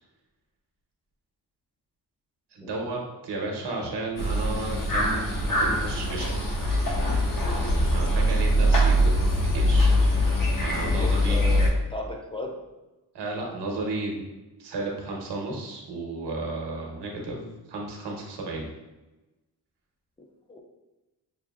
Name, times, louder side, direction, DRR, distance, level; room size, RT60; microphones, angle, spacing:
voice 1, 2.5-6.4 7.9-9.1 9.4-9.9 10.6-11.4 13.1-14.2 14.6-18.7, right 2 dB, 85° right, 0 dB, 1.0 m, -33 dB
sound 1, 4.2-11.7, equal, 50° left, 0.9 m, -23 dB
voice 2, 10.9-12.6 20.2-20.6, left 2 dB, 15° left, 2 dB, 0.4 m, -36 dB
5.8 x 2.6 x 2.4 m, 1.1 s
wide cardioid pair, 140°, 40 cm